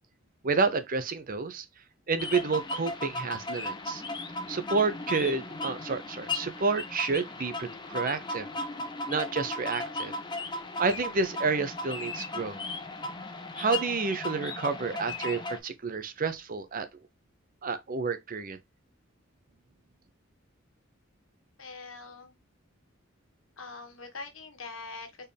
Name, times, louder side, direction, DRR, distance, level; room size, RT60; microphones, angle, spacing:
voice 1, 0.4-1.7 2.1-4.0 4.5-8.5 9.1-10.2 10.8-12.6 13.6-16.9 17.6-18.6, right 4 dB, 45° right, 0.7 m, -30 dB
sound 1, 2.2-15.6, left 2 dB, 25° left, 0.8 m, -36 dB
voice 2, 21.6-22.4 23.6-25.3, left 3 dB, 80° left, 1.5 m, -43 dB
4.5 x 3.5 x 3.3 m
head